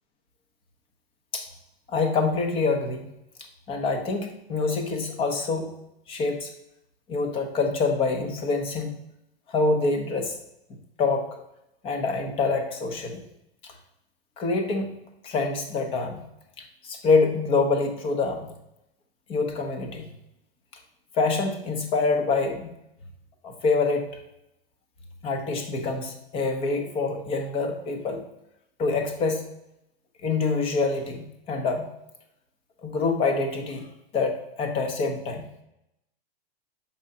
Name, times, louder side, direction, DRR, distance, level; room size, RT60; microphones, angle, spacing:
voice 1, 1.9-3.1 3.7-5.7 6.1-6.5 7.1-8.9 9.5-10.3 11.0-11.3 11.8-13.2 14.4-14.9 15.2-16.2 16.6-18.5 19.3-20.1 21.1-22.7 23.4-24.1 25.2-28.2 28.8-29.5 30.2-31.9 32.8-33.9 34.1-35.5, left 3 dB, 20° left, 5 dB, 0.8 m, -26 dB
6.8 x 5.6 x 3.8 m, 0.83 s
hypercardioid pair, 155°, 30 cm